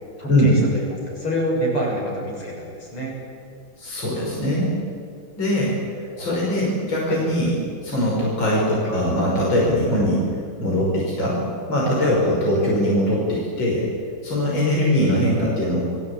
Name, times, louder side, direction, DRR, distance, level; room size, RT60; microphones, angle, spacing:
voice 1, 0.2-3.1 6.1-6.3 7.1-7.2 8.8-8.9 15.1-15.2, equal, 80° left, -2 dB, 7.9 m, -27 dB
voice 2, 3.8-4.7 5.4-5.8 6.2-10.2 10.6-11.4 11.7-13.9 14.2-15.8, equal, 65° left, -4 dB, 6.6 m, -21 dB
30.0 x 20.5 x 8.6 m, 2.3 s
omnidirectional pair, 2.3 m